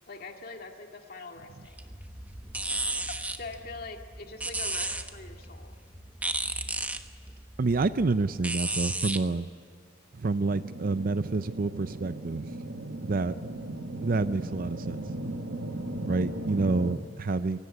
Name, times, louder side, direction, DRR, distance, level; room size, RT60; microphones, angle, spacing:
voice 1, 0.1-1.8 3.1-5.8, left 3 dB, 50° left, 3 dB, 2.0 m, -43 dB
sound 1, 1.7-9.2, right 2 dB, 10° right, 1.2 m, -34 dB
voice 2, 7.6-9.5 10.1-12.5 13.0-13.4 14.0-15.1 16.1-17.6, right 3 dB, 50° right, 13 dB, 0.5 m, -28 dB
sound 2, 10.4-17.0, right 1 dB, 85° right, 1.5 m, -37 dB
24.0 x 17.5 x 9.6 m, 2.5 s
head